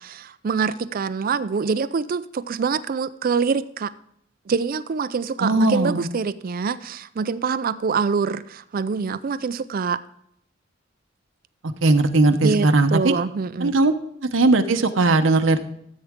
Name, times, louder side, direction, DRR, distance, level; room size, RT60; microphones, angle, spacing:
voice 1, 0.0-3.9 4.5-10.0 12.3-13.7, right 5 dB, 45° right, 0.4 m, -25 dB
voice 2, 5.4-6.1 11.8-13.1 13.6-13.9 14.3-15.6, right 2 dB, 75° right, 0.9 m, -18 dB
13.5 x 8.2 x 3.6 m
head